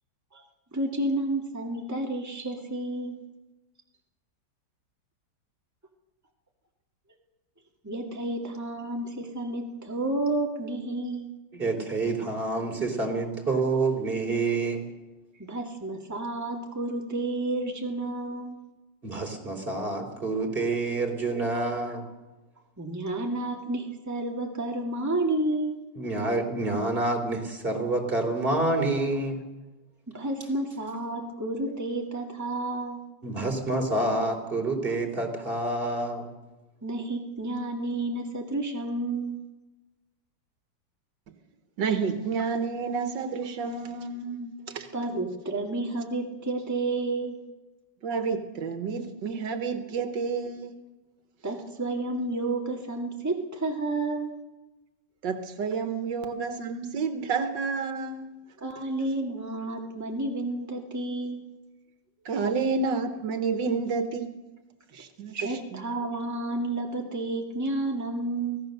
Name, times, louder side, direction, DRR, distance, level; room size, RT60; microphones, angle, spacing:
voice 1, 0.7-3.2 7.8-11.3 15.5-18.6 22.8-25.8 30.1-33.0 34.9-35.0 36.8-39.4 44.9-47.4 51.4-54.3 58.6-61.4 65.3-68.6, right 2 dB, 10° right, 0 dB, 2.0 m, -31 dB
voice 2, 11.5-14.8 19.0-22.1 26.0-29.4 33.2-36.3, right 2 dB, 30° right, 2 dB, 3.6 m, -28 dB
voice 3, 41.8-44.9 48.0-50.8 55.2-58.3 62.3-64.3 64.9-65.8, right 5 dB, 85° right, 8 dB, 1.9 m, -30 dB
24.5 x 16.5 x 6.6 m, 1.1 s
omnidirectional pair, 1.9 m